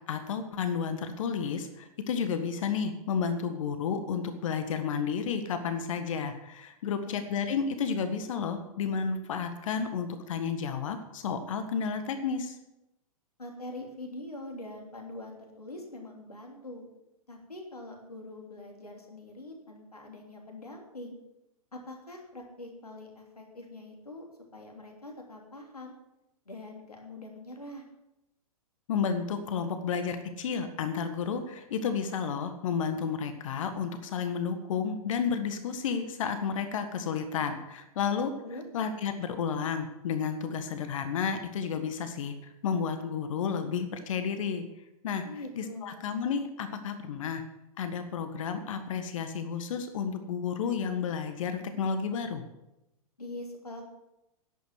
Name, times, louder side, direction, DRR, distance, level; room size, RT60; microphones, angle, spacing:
voice 1, 0.1-12.6 28.9-38.3 38.7-44.6 45.0-45.2 45.6-47.4 47.8-52.4, left 6 dB, 60° left, 8 dB, 1.6 m, -31 dB
voice 2, 7.1-7.4 13.4-16.8 17.3-21.1 21.7-24.2 24.5-25.9 26.4-27.9 38.4-38.7 45.2-46.0 53.2-53.8, left 2 dB, 90° left, 1 dB, 3.2 m, -43 dB
11.0 x 8.6 x 8.0 m, 0.90 s
figure-of-eight pair, 105°, 19 cm